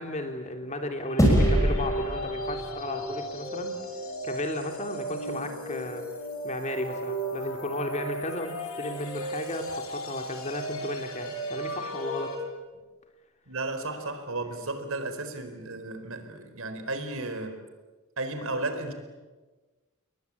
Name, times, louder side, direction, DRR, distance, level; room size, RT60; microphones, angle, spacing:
voice 1, 0.0-3.7 4.2-6.0 6.4-12.3, left 1 dB, 30° left, 5 dB, 3.2 m, -34 dB
sound 1, 1.1-12.4, right 1 dB, 70° left, 6.4 m, -35 dB
ss-wavedown, 1.2-3.8, equal, 15° left, 6.3 m, -25 dB
voice 2, 13.5-17.6 18.2-18.9, right 2 dB, 70° right, 8 dB, 4.3 m, -34 dB
30.0 x 22.5 x 8.6 m, 1.3 s
head